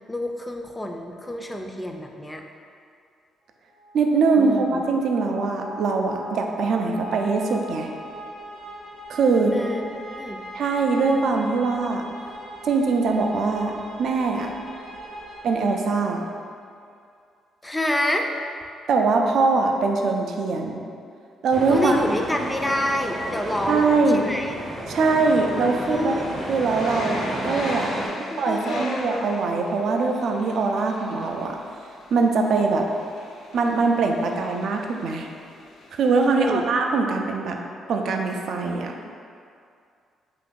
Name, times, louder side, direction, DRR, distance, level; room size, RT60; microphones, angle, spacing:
voice 1, 0.1-2.4 4.4-4.9 9.5-10.4 17.6-18.3 21.7-24.5 25.9-26.2 27.9-29.2 36.4-36.6, left 1 dB, 10° left, 2 dB, 0.3 m, -28 dB
sound 1, 3.7-16.5, right 1 dB, 90° right, 0.7 m, -40 dB
voice 2, 3.9-7.9 9.1-9.5 10.5-12.0 12.6-13.7 14.0-14.5 15.4-16.2 18.9-20.8 21.4-22.0 23.7-24.3 24.9-27.9 28.4-31.6 32.1-32.9 33.5-35.3 35.9-37.6 37.9-39.1, right 4 dB, 65° right, 2 dB, 0.3 m, -22 dB
sound 2, 21.5-28.1, right 1 dB, 45° right, 0.7 m, -32 dB
sound 3, 22.1-23.1 23.9-24.1 24.4-36.5, left 2 dB, 80° left, 0.4 m, -41 dB
2.8 x 2.5 x 3.7 m, 2.3 s
cardioid pair, 90°, 0 cm